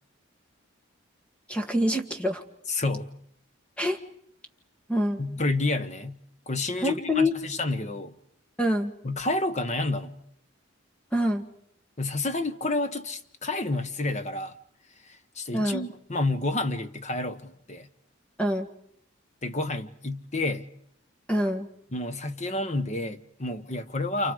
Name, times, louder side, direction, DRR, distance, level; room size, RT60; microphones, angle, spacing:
voice 1, 1.5-2.4 3.8-4.0 4.9-5.2 6.8-7.3 8.6-8.9 11.1-11.4 15.5-15.8 18.4-18.7 21.3-21.7, equal, 5° left, 1.6 m, -25 dB
voice 2, 2.7-3.1 5.2-6.2 6.5-8.1 9.0-10.2 12.0-14.6 15.0-17.9 19.4-20.7 21.9-24.3, left 2 dB, 35° left, 1.1 m, -29 dB
29.0 x 28.5 x 5.0 m
head